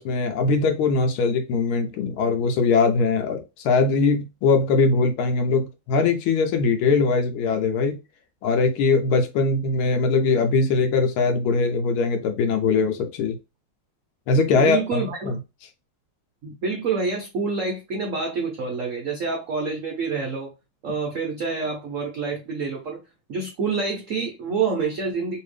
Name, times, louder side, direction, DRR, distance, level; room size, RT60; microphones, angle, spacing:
voice 1, 0.0-8.0 8.4-13.4 14.3-15.3, left 4 dB, 85° left, 1.5 m, -21 dB
voice 2, 14.5-15.4 16.4-20.5 20.8-23.0 23.3-25.4, right 4 dB, 80° right, 0.7 m, -27 dB
3.3 x 2.7 x 3.2 m
omnidirectional pair, 2.3 m